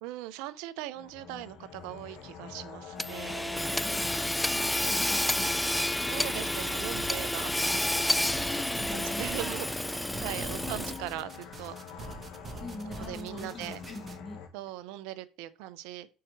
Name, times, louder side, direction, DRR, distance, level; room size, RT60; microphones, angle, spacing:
voice 1, 0.0-3.8 6.1-8.3 8.9-9.7 10.2-11.7 13.0-13.8 14.5-16.1, right 15 dB, 80° right, 0.5 m, -40 dB
sound 1, 0.9-14.5, left 7 dB, 75° left, 1.2 m, -46 dB
Hammer / Sawing, 3.0-11.2, left 1 dB, 5° left, 0.3 m, -30 dB
voice 2, 3.7-6.2 8.2-9.4 10.1-11.3 12.6-14.4, left 3 dB, 30° left, 1.9 m, -43 dB
sound 2, 6.7-14.2, right 3 dB, 35° right, 0.9 m, -45 dB
4.7 x 4.5 x 5.8 m
supercardioid pair, 75°, 0 cm